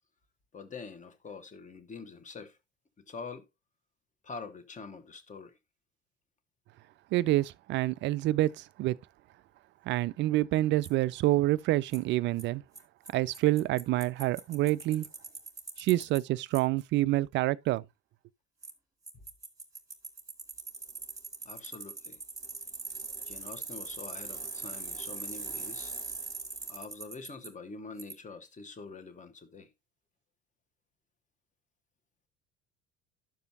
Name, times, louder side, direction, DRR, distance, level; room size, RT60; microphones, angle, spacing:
voice 1, 0.5-2.6 3.1-3.5 4.2-5.6 21.4-22.2 23.2-25.9 26.7-29.7, left 4 dB, 25° left, 1.2 m, -45 dB
voice 2, 7.1-9.0 9.9-12.6 13.1-15.1 15.8-17.8, right 16 dB, 35° right, 0.4 m, -27 dB
Bicycle, 10.8-10.9 11.9-12.0 12.4-12.5 12.8-12.9 13.1-13.2 13.3-16.2 16.5-16.6 18.6-18.7 19.1-27.5 28.0-28.1, right 4 dB, 10° right, 1.6 m, -41 dB
11.0 x 6.7 x 2.7 m
figure-of-eight pair, 60°, 33 cm